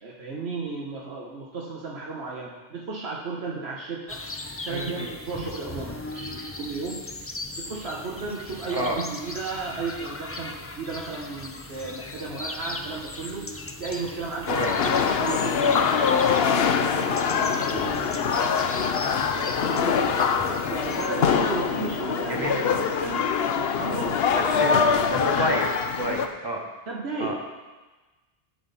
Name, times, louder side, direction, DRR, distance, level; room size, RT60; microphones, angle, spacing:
voice 1, 0.0-4.2 4.7-7.0 7.6-13.5 13.8-19.9 20.5-24.2 24.5-24.9 25.2-25.5 26.9-27.4, right 3 dB, 90° right, -3 dB, 1.4 m, -34 dB
sound 1, 4.1-21.1, left 2 dB, 20° left, 0.4 m, -38 dB
voice 2, 4.7-5.1 8.7-9.0 14.5-14.7 22.3-22.8 24.4-24.8 25.1-25.7 25.9-26.6 27.2-27.4, right 1 dB, 25° right, 0 dB, 1.3 m, -29 dB
sound 2, 14.5-26.3, left 6 dB, 75° left, 0.9 m, -24 dB
13.0 x 7.3 x 4.1 m, 1.2 s
omnidirectional pair, 1.0 m